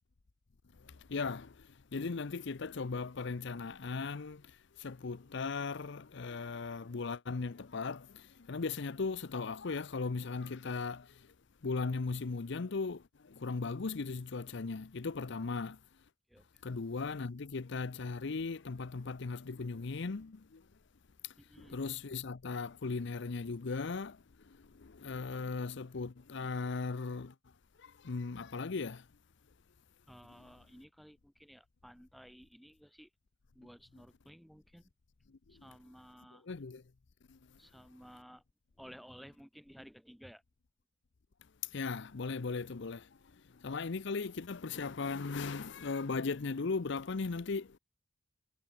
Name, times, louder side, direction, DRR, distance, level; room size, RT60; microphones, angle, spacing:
voice 1, 0.8-11.3 11.6-15.8 16.6-20.6 21.2-27.3 27.8-29.1 36.4-36.8 37.3-37.4 41.7-47.8, left 4 dB, 65° left, 0.7 m, -38 dB
voice 2, 21.4-21.8 30.1-33.1 33.5-34.9 35.5-36.5 37.6-38.4 38.8-40.4, equal, ahead, 2.1 m, -55 dB
head